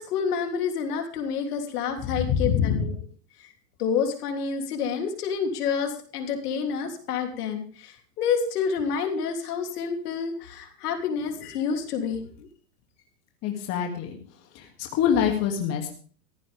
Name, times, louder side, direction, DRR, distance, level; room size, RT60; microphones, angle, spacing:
voice 1, 0.0-2.9 3.8-12.5, left 6 dB, 65° left, 4 dB, 3.3 m, -28 dB
voice 2, 2.1-2.9 13.4-14.2 14.5-15.9, left 8 dB, 30° left, 2 dB, 2.6 m, -25 dB
17.5 x 15.0 x 3.6 m, 0.43 s
supercardioid pair, 145°, 49 cm